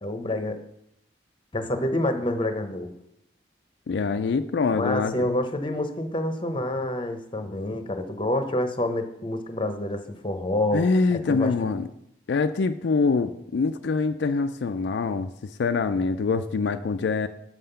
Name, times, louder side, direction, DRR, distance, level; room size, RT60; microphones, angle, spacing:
voice 1, 0.0-0.6 1.5-2.9 4.7-11.5, left 1 dB, 25° left, 8 dB, 0.8 m, -28 dB
voice 2, 3.9-5.4 10.7-11.9 12.3-15.3 15.6-17.3, left 4 dB, 75° left, 8 dB, 0.4 m, -24 dB
7.4 x 5.6 x 6.8 m, 0.78 s
head